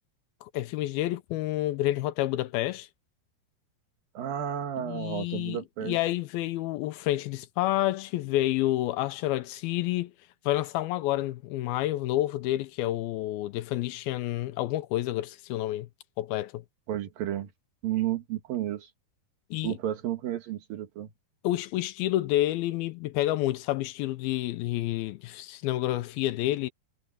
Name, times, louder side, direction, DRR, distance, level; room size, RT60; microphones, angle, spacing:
voice 1, 0.4-2.9 4.8-10.1 10.5-15.9 16.2-16.6 19.5-19.8 21.4-26.7, left 15 dB, 80° left, 2.5 m, -29 dB
voice 2, 4.1-6.0 16.9-17.5 17.8-18.9 19.6-21.1, right 11 dB, 70° right, 3.2 m, -32 dB
omnidirectional pair, 4.5 m